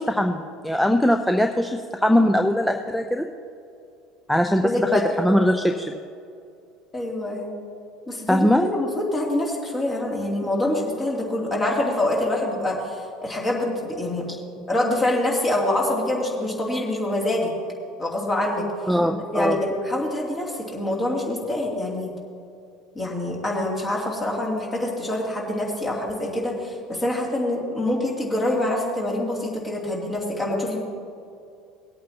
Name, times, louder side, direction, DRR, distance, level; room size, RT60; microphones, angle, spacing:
voice 1, 0.0-3.3 4.3-5.9 8.3-8.7 18.9-19.6, equal, 5° left, 4 dB, 0.6 m, -21 dB
voice 2, 4.6-5.1 6.9-7.5 8.1-14.3 14.7-17.5 18.0-18.7 19.3-22.2 22.9-30.8, left 1 dB, 25° left, -3 dB, 2.8 m, -25 dB
19.5 x 8.5 x 2.9 m, 2.5 s
figure-of-eight pair, 65°, 0 cm